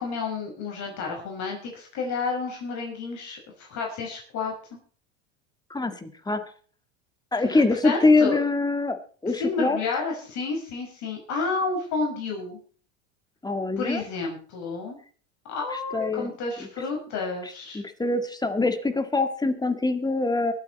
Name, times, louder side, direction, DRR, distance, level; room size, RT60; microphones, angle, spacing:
voice 1, 0.0-4.8 7.5-8.4 9.3-12.6 13.8-15.0 15.5-17.8, left 4 dB, 55° left, 0 dB, 5.9 m, -30 dB
voice 2, 5.7-6.4 7.3-9.8 13.4-14.0 15.7-16.3 17.4-20.5, left 3 dB, 10° left, 8 dB, 1.9 m, -24 dB
23.5 x 8.5 x 4.2 m, 0.42 s
supercardioid pair, 100°, 35 cm